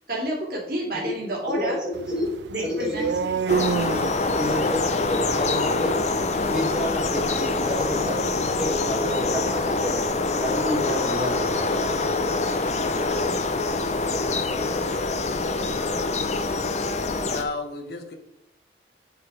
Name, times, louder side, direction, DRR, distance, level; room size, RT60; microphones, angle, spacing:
voice 1, 0.1-1.8 2.5-3.3, right 1 dB, 55° right, -3 dB, 2.7 m, -29 dB
voice 2, 1.5-2.3 2.6-3.3 4.3-6.0 6.4-11.6, equal, 5° right, -4 dB, 2.2 m, -30 dB
sound 1, 1.9-9.9, right 6 dB, 75° right, 0.3 m, -32 dB
sound 2, 3.5-17.4, left 3 dB, 40° left, 0.6 m, -25 dB
voice 3, 17.2-18.2, left 3 dB, 60° left, 6 dB, 1.1 m, -32 dB
8.1 x 5.0 x 4.8 m, 0.88 s
head